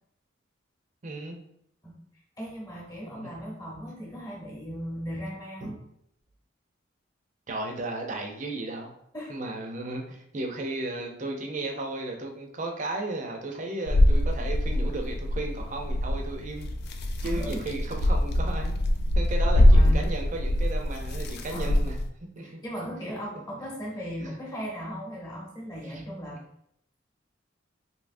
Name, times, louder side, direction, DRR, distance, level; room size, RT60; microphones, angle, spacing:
voice 1, 1.0-1.4 3.1-3.3 5.6-5.8 7.5-8.9 9.3-16.7 17.2-18.8 19.1-22.0 22.4-22.6 23.0-23.1 24.2-24.3 25.9-26.0, right 2 dB, 40° right, 2 dB, 0.5 m, -34 dB
voice 2, 2.4-5.8 9.1-9.3 17.2-17.6 19.6-20.2 21.5-21.8 22.4-26.4, equal, 20° left, -5 dB, 1.0 m, -37 dB
sound 1, 13.9-22.1, left 1 dB, 55° left, 0.3 m, -23 dB
3.4 x 2.7 x 2.5 m, 0.73 s
head